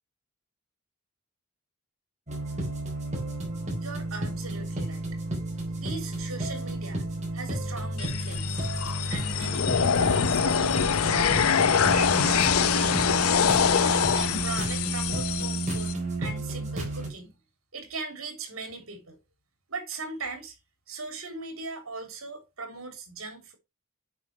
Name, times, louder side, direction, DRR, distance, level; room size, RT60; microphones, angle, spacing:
sound 1, 2.3-17.1, right 2 dB, 35° right, 3.7 m, -32 dB
voice 1, 3.8-5.2 5.8-7.1 7.3-8.6 9.1-11.6 11.9-13.3 13.9-17.4 17.7-19.2 19.7-20.6 20.9-23.6, right 3 dB, 70° right, 3.1 m, -39 dB
sound 2, 8.0-15.9, left 7 dB, 90° left, 0.7 m, -24 dB
8.7 x 5.5 x 3.1 m
head